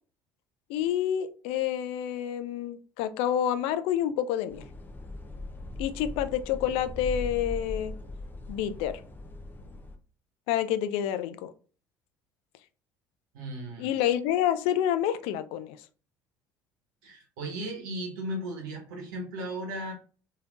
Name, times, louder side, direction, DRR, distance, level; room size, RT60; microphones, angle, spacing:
voice 1, 0.7-4.6 5.8-7.9 8.5-9.0 10.5-11.5 13.8-15.8, left 10 dB, 65° left, 0.4 m, -28 dB
sound 1, 4.5-10.0, left 2 dB, 20° left, 0.6 m, -39 dB
voice 2, 13.3-13.9 17.0-19.9, right 1 dB, 75° right, 1.0 m, -36 dB
3.3 x 2.7 x 2.4 m
hypercardioid pair, 60°, 11 cm